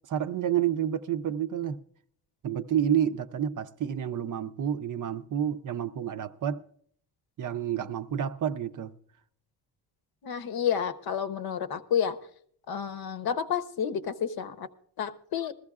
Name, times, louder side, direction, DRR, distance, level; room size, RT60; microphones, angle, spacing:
voice 1, 0.1-1.8 2.4-6.6 7.4-8.9, right 9 dB, 45° right, 0.6 m, -29 dB
voice 2, 10.2-12.2 12.7-14.7 15.0-15.5, left 8 dB, 60° left, 0.8 m, -30 dB
20.5 x 14.5 x 2.4 m
cardioid pair, 145°, 43 cm